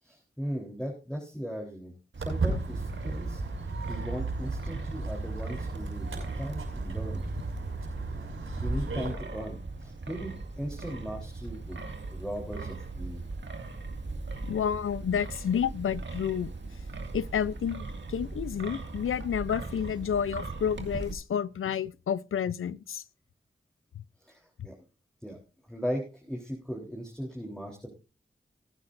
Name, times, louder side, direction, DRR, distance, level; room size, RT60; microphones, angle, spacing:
voice 1, 0.0-7.3 8.0-8.1 8.6-11.8 12.1-13.3 24.2-24.8 25.2-25.4 25.7-27.9, equal, 5° left, 3.6 m, -38 dB
Wind, 2.1-21.1, right 3 dB, 60° right, 2.2 m, -40 dB
Walk footsteps, 2.2-9.1, right 3 dB, 90° right, 6.4 m, -34 dB
voice 2, 14.4-16.5 17.1-23.0 24.0-24.1 24.6-24.7, left 8 dB, 85° left, 0.6 m, -30 dB
20.5 x 9.8 x 2.6 m
cardioid pair, 45°, 21 cm